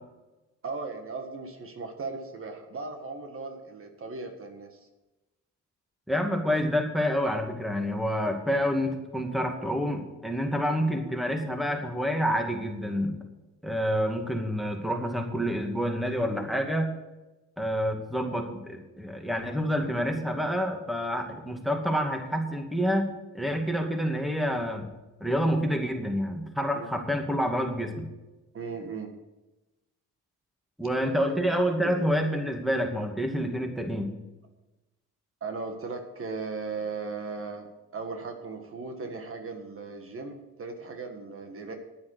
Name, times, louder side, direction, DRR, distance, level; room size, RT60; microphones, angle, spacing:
voice 1, 0.6-4.9 26.7-27.0 28.5-29.1 31.8-32.0 35.4-41.8, right 4 dB, 45° right, 5 dB, 1.7 m, -37 dB
voice 2, 6.1-13.2 13.6-16.9 17.6-24.9 25.2-28.1 30.8-34.1, equal, ahead, 3 dB, 2.3 m, -28 dB
10.5 x 9.5 x 6.5 m, 1.0 s
cardioid pair, 90°, 30 cm